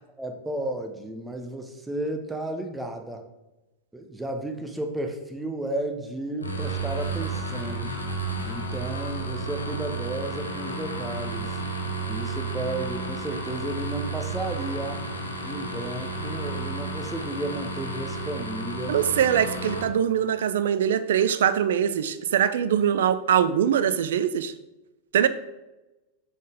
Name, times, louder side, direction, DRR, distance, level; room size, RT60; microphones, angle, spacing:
voice 1, 0.2-3.2 3.9-7.9 8.5-11.6 12.1-15.0 15.4-19.0, right 1 dB, 10° right, 4 dB, 0.8 m, -33 dB
sound 1, 6.4-19.8, right 3 dB, 80° left, 0.8 m, -32 dB
voice 2, 18.9-24.5 25.1-25.3, right 9 dB, 60° right, 14 dB, 0.4 m, -22 dB
7.3 x 4.0 x 3.5 m, 1.0 s
figure-of-eight pair, 90°, 0 cm